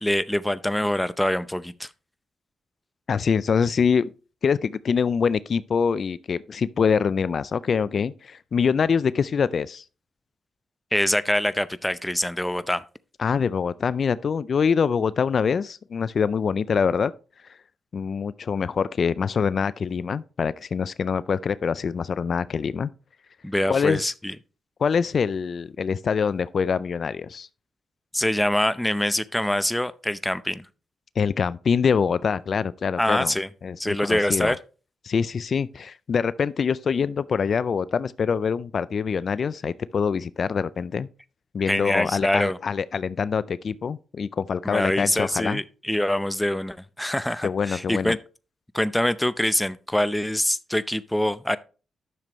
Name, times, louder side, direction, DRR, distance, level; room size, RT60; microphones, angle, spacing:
voice 1, 0.0-1.9 10.9-12.8 23.4-24.3 28.1-30.7 33.0-33.5 33.8-34.6 41.7-42.6 44.6-48.2 48.7-51.6, left 1 dB, 5° left, 0.6 m, -24 dB
voice 2, 3.1-4.1 4.4-9.8 13.2-17.1 17.9-22.9 23.7-24.1 24.8-27.5 31.2-33.3 33.6-34.5 35.0-41.1 41.5-45.6 47.4-48.2, left 6 dB, 60° left, 0.3 m, -24 dB
11.0 x 6.7 x 3.1 m
cardioid pair, 60°, 0 cm